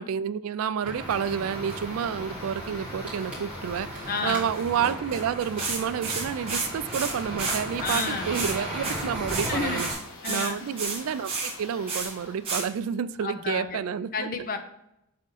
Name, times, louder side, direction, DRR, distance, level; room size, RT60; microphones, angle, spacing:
voice 1, 0.0-9.9 10.3-14.3, right 8 dB, 70° right, 0.3 m, -30 dB
sound 1, 0.8-9.9, right 1 dB, 5° right, 2.2 m, -36 dB
sound 2, 1.0-13.2, left 2 dB, 65° left, 1.2 m, -47 dB
sound 3, 1.7-1.8 2.1-2.2 2.5-2.7 3.2-3.9 4.3-7.6 7.8-8.5 8.8-9.5 9.8-11.5 11.9-12.1 12.4-12.6, right 3 dB, 25° right, 1.8 m, -32 dB
voice 2, 4.1-4.4 7.8-8.3 9.5-9.8 10.2-10.6 13.2-13.8 14.1-14.6, left 4 dB, 40° left, 0.6 m, -31 dB
6.5 x 3.6 x 4.0 m
head